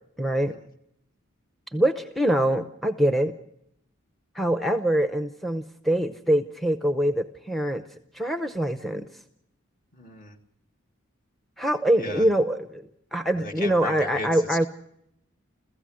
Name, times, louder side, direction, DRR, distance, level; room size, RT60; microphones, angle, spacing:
voice 1, 0.2-0.6 1.7-3.3 4.3-7.8 8.1-9.0 11.6-14.7, right 1 dB, ahead, 7 dB, 0.8 m, -24 dB
voice 2, 9.9-10.4 12.0-12.2 13.4-14.7, left 1 dB, 40° left, 3 dB, 2.0 m, -36 dB
29.5 x 15.5 x 6.3 m, 0.76 s
head